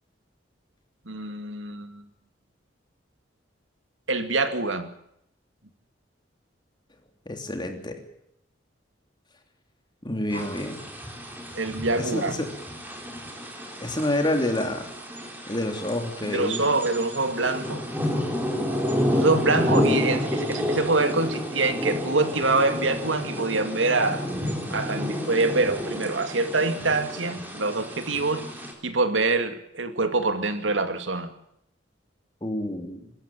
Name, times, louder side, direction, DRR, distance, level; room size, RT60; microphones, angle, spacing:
voice 1, 1.1-2.0 4.1-4.9 10.3-10.5 11.5-12.4 16.2-17.8 19.1-24.3 24.7-28.4 28.8-31.3, right 3 dB, 90° right, 2.4 m, -25 dB
voice 2, 7.2-8.0 10.0-10.8 11.9-12.5 13.8-14.9 15.5-16.7 19.5-19.8 32.4-33.1, left 1 dB, 25° left, 3.2 m, -28 dB
sound 1, 10.3-28.7, left 1 dB, 10° right, 4.1 m, -30 dB
24.0 x 13.5 x 9.0 m
head